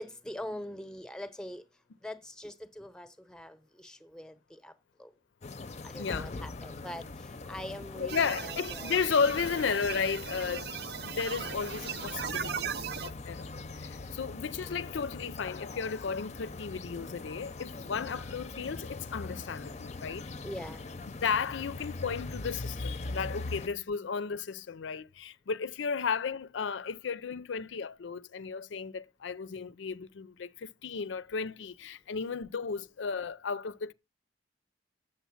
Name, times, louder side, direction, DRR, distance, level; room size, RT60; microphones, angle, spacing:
voice 1, 0.0-1.6 2.0-4.7 5.0-5.1 5.8-7.0 7.5-8.9 20.4-20.8, left 1 dB, 5° left, 0.8 m, -42 dB
sound 1, 5.4-23.7, left 3 dB, 35° left, 0.6 m, -42 dB
voice 2, 5.9-6.3 8.0-10.7 11.0-12.6 13.0-13.5 13.8-20.3 21.2-33.9, left 5 dB, 85° left, 0.5 m, -34 dB
sound 2, 8.1-13.1, right 7 dB, 60° right, 0.7 m, -38 dB
8.7 x 7.3 x 7.1 m
head